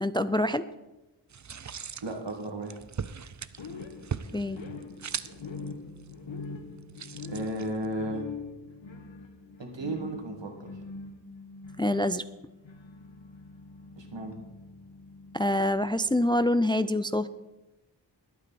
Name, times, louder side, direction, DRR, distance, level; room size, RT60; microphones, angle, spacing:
voice 1, 0.0-0.6 4.3-4.6 11.8-12.2 15.3-17.3, left 1 dB, 10° left, 13 dB, 0.4 m, -26 dB
sound 1, 1.3-8.1, right 7 dB, 40° right, 0.5 m, -41 dB
voice 2, 2.0-2.8 7.3-8.2 9.6-10.8 14.0-14.3, right 1 dB, 70° right, 2 dB, 2.3 m, -34 dB
sound 2, 3.6-16.5, left 4 dB, 85° left, 1.4 m, -44 dB
21.0 x 8.5 x 4.2 m, 1.0 s
wide cardioid pair, 60°, 44 cm